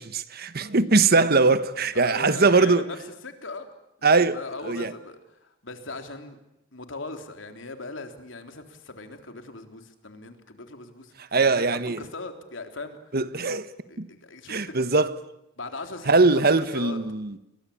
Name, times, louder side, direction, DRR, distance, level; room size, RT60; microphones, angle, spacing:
voice 1, 0.0-2.8 4.0-4.4 4.6-4.9 11.3-12.0 13.1-13.7 14.0-14.1 14.5-15.2 16.1-17.3, right 3 dB, 55° right, 1.3 m, -21 dB
voice 2, 1.9-3.0 3.2-3.7 4.0-6.4 6.7-11.1 11.4-13.0 13.9-14.9 15.6-17.0, left 3 dB, 80° left, 3.7 m, -39 dB
29.5 x 23.0 x 8.7 m
head